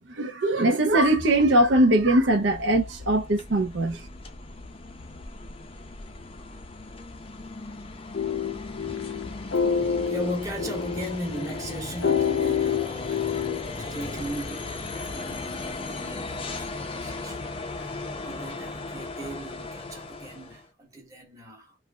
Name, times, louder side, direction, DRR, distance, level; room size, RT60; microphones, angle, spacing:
voice 1, 0.1-4.1, right 1 dB, 75° right, 0.7 m, -21 dB
sound 1, 0.8-20.7, left 3 dB, 30° left, 0.5 m, -37 dB
sound 2, 8.1-13.7, left 7 dB, 80° left, 0.6 m, -27 dB
voice 2, 9.7-21.8, equal, 15° right, 1.0 m, -38 dB
3.2 x 2.5 x 2.2 m
head